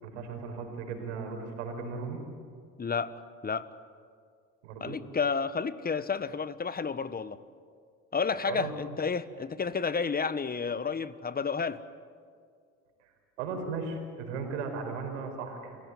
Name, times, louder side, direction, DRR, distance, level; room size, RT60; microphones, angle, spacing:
voice 1, 0.0-2.2 4.6-5.0 8.5-8.7 13.0-13.1 13.4-15.8, right 4 dB, 90° right, 4 dB, 4.9 m, -36 dB
voice 2, 2.8-3.7 4.8-7.4 8.1-11.8, left 5 dB, 25° left, 15 dB, 1.3 m, -31 dB
29.5 x 17.0 x 9.6 m, 2.2 s
hypercardioid pair, 75°, 35 cm